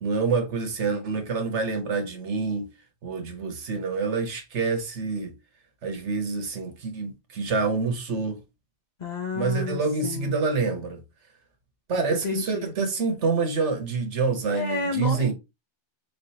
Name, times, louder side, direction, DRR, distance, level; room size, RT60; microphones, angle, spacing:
voice 1, 0.0-2.7 3.0-5.3 5.8-8.4 9.3-11.0 11.9-15.3, right 4 dB, 75° right, 1.3 m, -27 dB
voice 2, 9.0-10.3 12.1-12.7 14.5-15.3, left 3 dB, 45° left, 0.7 m, -30 dB
4.9 x 3.3 x 2.7 m
omnidirectional pair, 1.2 m